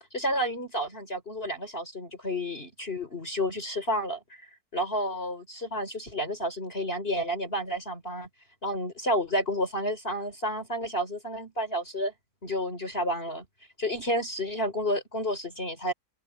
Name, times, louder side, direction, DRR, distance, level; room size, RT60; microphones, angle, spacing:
voice 1, 0.1-4.2 4.7-8.3 8.6-12.1 12.4-13.4 13.8-15.9, equal, 30° left, 4.3 m, -30 dB
open air
omnidirectional pair, 2.1 m